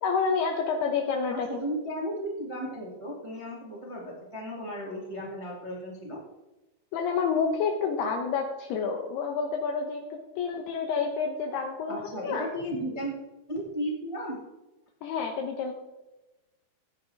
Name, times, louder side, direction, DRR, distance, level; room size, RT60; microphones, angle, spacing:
voice 1, 0.0-1.5 6.9-12.5 15.0-15.7, left 5 dB, 75° left, 3 dB, 2.7 m, -29 dB
voice 2, 1.3-6.2 11.9-13.1 13.5-14.4, equal, 55° right, -3 dB, 0.3 m, -35 dB
16.0 x 9.7 x 3.5 m, 1.0 s
omnidirectional pair, 5.3 m